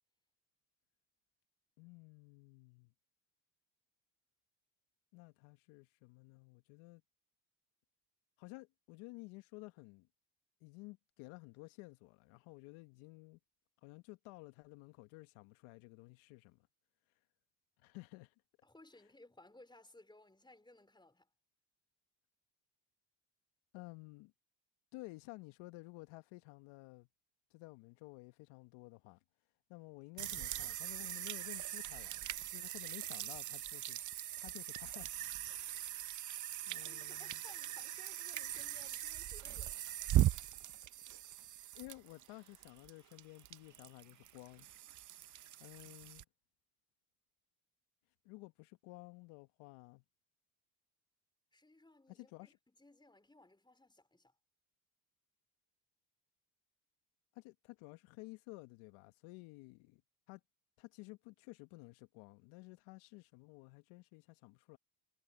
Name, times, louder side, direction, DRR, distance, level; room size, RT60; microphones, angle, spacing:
voice 1, 1.8-2.9 5.1-7.0 8.4-10.1 10.6-13.4 13.8-16.7 17.8-18.3 23.7-24.3 24.9-27.1 27.5-29.2 29.7-34.0 34.4-35.1 35.5-35.8 36.7-37.4 41.7-44.7 45.6-46.2 48.2-50.0 52.1-52.6 57.3-60.0 60.3-60.4 60.8-64.8, left 24 dB, 75° left, 1.3 m, -54 dB
voice 2, 18.6-21.3 36.8-39.8 51.5-54.3, left 2 dB, 10° left, 3.9 m, -61 dB
sound 1, 30.2-46.2, right 13 dB, 40° right, 0.7 m, -40 dB
hypercardioid pair, 70°, 49 cm